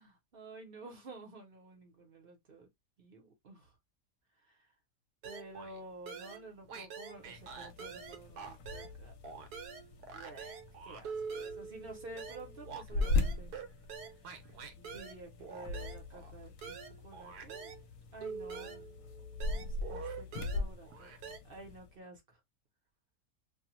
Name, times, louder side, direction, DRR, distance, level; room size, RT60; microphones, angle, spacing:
voice 1, 0.0-2.7 3.0-3.7 4.5-4.7 5.2-9.1 10.1-13.5 14.8-17.7 18.1-19.0 19.5-21.1 21.4-22.2, right 2 dB, 40° right, 1.0 m, -51 dB
sound 1, 5.2-5.8 6.1-9.0 9.2-17.8 18.2-21.4, right 5 dB, 75° right, 1.2 m, -45 dB
sound 2, 7.1-21.9, left 3 dB, 65° left, 0.9 m, -40 dB
2.6 x 2.3 x 2.9 m
omnidirectional pair, 1.7 m